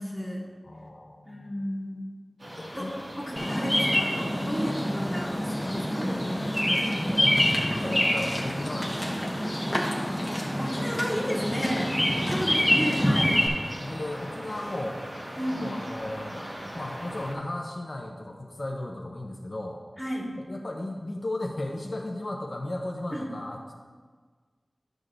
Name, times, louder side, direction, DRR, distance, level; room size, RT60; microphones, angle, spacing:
voice 1, 0.0-0.5 1.3-2.0 2.7-7.0 7.7-8.0 9.7-9.9 10.6-11.9 12.3-13.4 15.4-15.7 20.0-20.3 23.1-23.3, equal, 5° right, -7 dB, 2.4 m, -33 dB
voice 2, 0.6-1.6 2.6-2.9 6.7-9.2 12.2-13.3 13.8-15.0 15.5-19.8 20.4-23.7, left 1 dB, 55° left, 0 dB, 0.7 m, -36 dB
sound 1, 2.4-17.4, equal, 70° right, 1.8 m, -41 dB
Bird vocalization bird call bird song, 3.4-13.5, equal, 15° left, 1.2 m, -26 dB
12.0 x 6.3 x 2.5 m, 1.5 s
wide cardioid pair, 60°, 0 cm